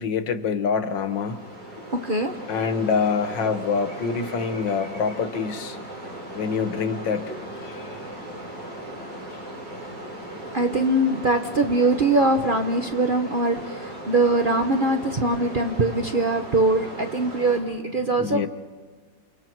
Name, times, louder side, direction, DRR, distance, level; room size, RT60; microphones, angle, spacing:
voice 1, 0.0-1.4 1.8-1.9 2.5-5.8 6.3-8.0 18.2-18.5, left 5 dB, 80° left, 9 dB, 1.9 m, -26 dB
sound 1, 0.9-17.6, right 1 dB, 70° right, 6.6 m, -37 dB
voice 2, 1.9-2.4 6.0-6.2 10.5-18.5, right 2 dB, 40° right, 5 dB, 0.9 m, -22 dB
29.5 x 27.0 x 4.6 m, 1.5 s
omnidirectional pair, 2.0 m